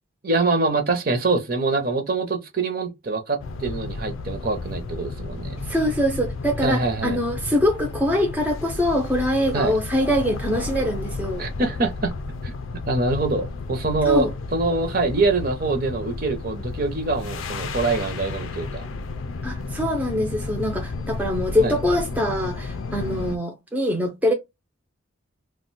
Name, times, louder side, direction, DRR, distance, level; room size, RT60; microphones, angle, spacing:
voice 1, 0.2-5.6 6.6-7.2 9.5-9.7 11.4-12.1 12.9-14.3 14.5-18.9 21.6-21.7, right 3 dB, 45° right, 0.7 m, -24 dB
sound 1, 3.4-23.4, left 3 dB, 85° left, 0.4 m, -32 dB
voice 2, 5.7-11.4 14.1-14.3 19.4-24.3, equal, 10° right, 0.5 m, -23 dB
2.5 x 2.1 x 3.9 m
head